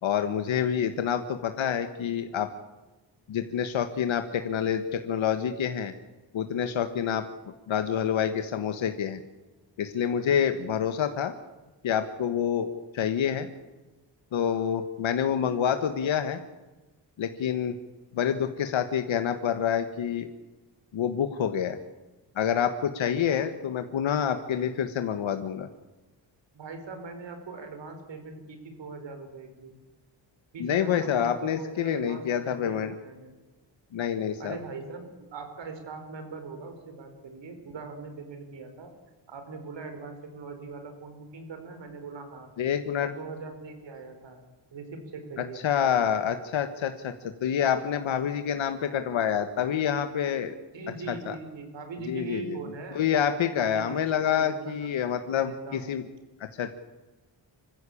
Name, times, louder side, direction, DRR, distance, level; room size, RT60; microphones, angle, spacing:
voice 1, 0.0-2.5 3.3-5.9 6.3-7.2 7.7-9.2 9.8-11.3 11.8-13.5 14.3-16.4 17.2-17.7 18.1-20.3 20.9-21.8 22.3-25.7 30.6-32.9 33.9-34.6 42.6-43.1 45.6-50.5 51.1-51.3 52.1-52.4 52.9-56.0 56.6-56.7, left 8 dB, 85° left, 8 dB, 1.5 m, -27 dB
voice 2, 26.5-29.7 30.5-33.4 34.4-38.9 39.3-42.5 43.0-44.4 44.7-45.7 50.7-55.0 55.4-56.0, right 4 dB, 70° right, 6 dB, 5.0 m, -41 dB
26.0 x 15.0 x 8.6 m, 1.2 s
wide cardioid pair, 170°, 45 cm